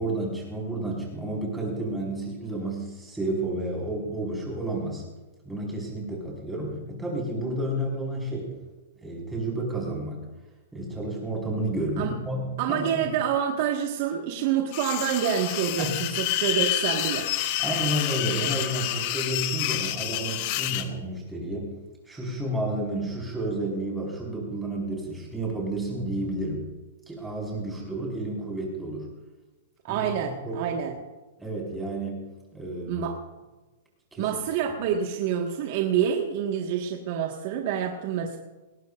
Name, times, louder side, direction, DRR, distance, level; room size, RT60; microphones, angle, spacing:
voice 1, 0.0-5.0 5.4-8.5 9.0-10.2 10.7-13.0 15.8-16.0 17.6-21.7 22.1-26.7 27.1-29.1 29.9-30.6 31.4-32.2 32.5-33.0 34.1-34.3, right 1 dB, 5° right, -3 dB, 5.0 m, -31 dB
voice 2, 12.6-17.3 29.8-30.9 32.9-33.2 34.2-38.4, right 8 dB, 45° right, 1 dB, 1.6 m, -27 dB
sound 1, 14.7-20.9, left 13 dB, 40° left, 1.1 m, -28 dB
20.5 x 17.5 x 2.6 m, 1.1 s
hypercardioid pair, 155°, 0 cm